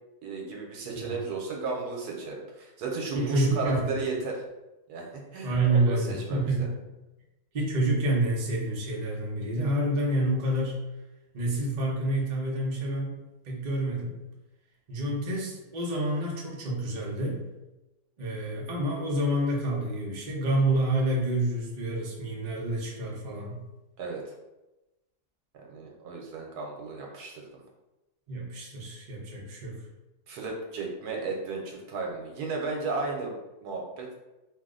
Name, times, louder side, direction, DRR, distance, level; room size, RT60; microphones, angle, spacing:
voice 1, 0.2-4.4 4.9-5.0 5.3-6.7 24.0-24.2 25.7-27.5 30.3-33.3 33.6-34.1, right 4 dB, 80° right, 0 dB, 1.2 m, -34 dB
voice 2, 3.1-4.0 5.4-6.7 7.5-10.8 11.3-13.2 13.4-14.1 14.9-17.4 18.2-23.6 28.3-29.8, right 1 dB, 55° right, -3 dB, 0.4 m, -28 dB
2.8 x 2.0 x 3.6 m, 1.0 s
omnidirectional pair, 1.7 m